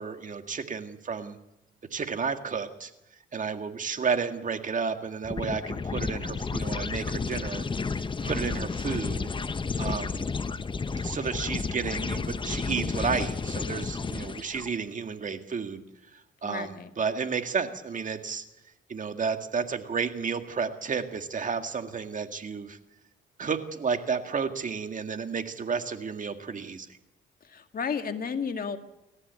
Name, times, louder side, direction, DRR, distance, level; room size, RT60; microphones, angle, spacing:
voice 1, 0.0-1.4 1.9-2.9 3.3-9.3 9.8-10.2 11.0-15.8 16.1-18.5 18.9-22.8 23.4-26.9, right 5 dB, 40° right, 7 dB, 2.0 m, -32 dB
sound 1, 5.2-14.7, left 4 dB, 25° left, 0.8 m, -32 dB
voice 2, 16.4-16.9 27.4-28.8, left 6 dB, 45° left, 7 dB, 2.1 m, -33 dB
29.0 x 14.5 x 8.3 m, 0.94 s
cardioid pair, 90°, 20 cm